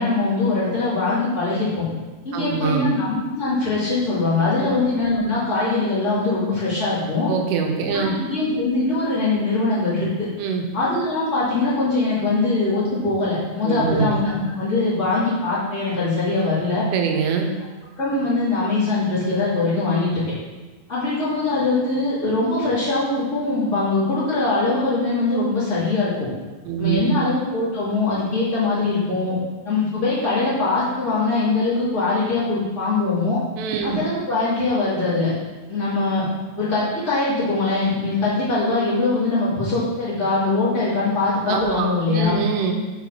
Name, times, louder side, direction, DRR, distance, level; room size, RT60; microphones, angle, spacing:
voice 1, 0.0-1.8 2.2-7.3 7.9-10.3 10.7-16.8 18.0-20.2 20.9-26.3 26.8-29.3 29.6-33.4 33.8-35.3 35.7-36.2 36.5-42.4, left 3 dB, 70° left, -12 dB, 0.7 m, -22 dB
voice 2, 2.3-2.9 4.6-4.8 7.3-8.2 10.4-10.7 13.6-14.1 16.9-17.5 26.6-27.3 33.6-34.0 41.5-42.7, right 6 dB, 85° right, 3 dB, 3.2 m, -23 dB
8.0 x 4.1 x 4.5 m, 1.2 s
omnidirectional pair, 5.7 m